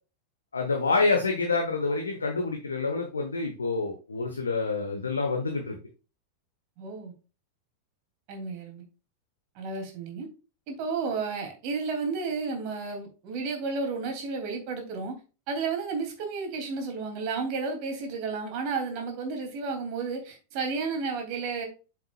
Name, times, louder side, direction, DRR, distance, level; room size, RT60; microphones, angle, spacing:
voice 1, 0.5-5.8, left 3 dB, 75° left, 1.2 m, -27 dB
voice 2, 6.8-7.1 8.3-8.8 9.5-10.3 10.7-15.1 15.5-21.7, right 4 dB, 45° right, 3.0 m, -32 dB
8.0 x 7.4 x 2.4 m
figure-of-eight pair, 90°, 0 cm